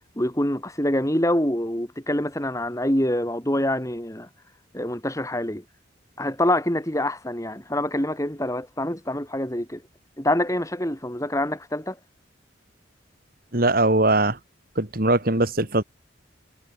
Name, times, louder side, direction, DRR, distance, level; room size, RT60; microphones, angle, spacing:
voice 1, 0.2-4.3 4.7-5.6 6.2-9.8 10.2-12.0, left 1 dB, 15° left, 3.8 m, -25 dB
voice 2, 13.5-14.4 14.8-15.8, right 2 dB, 50° right, 2.5 m, -21 dB
head